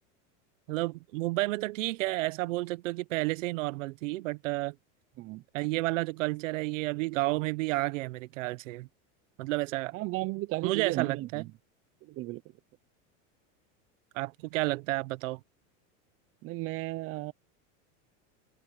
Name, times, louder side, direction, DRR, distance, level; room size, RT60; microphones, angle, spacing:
voice 1, 0.7-4.7 5.5-8.9 9.4-9.9 10.6-11.4 14.1-15.4, right 20 dB, 80° right, 1.0 m, -31 dB
voice 2, 9.9-11.5 12.0-12.4 16.4-17.3, right 19 dB, 35° right, 0.9 m, -34 dB
supercardioid pair, 145°, 38 cm